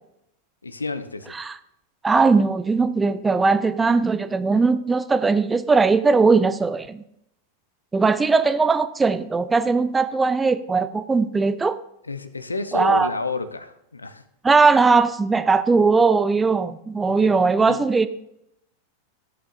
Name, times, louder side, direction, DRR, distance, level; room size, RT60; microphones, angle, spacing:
voice 1, 0.6-1.4 12.0-14.2 17.2-17.4 17.6-17.8, left 3 dB, 80° left, 12 dB, 0.6 m, -30 dB
voice 2, 2.0-7.0 7.9-11.8 12.7-13.1 14.4-18.1, right 4 dB, 15° right, 13 dB, 0.4 m, -19 dB
13.5 x 8.1 x 2.6 m, 0.78 s
figure-of-eight pair, 90°, 0 cm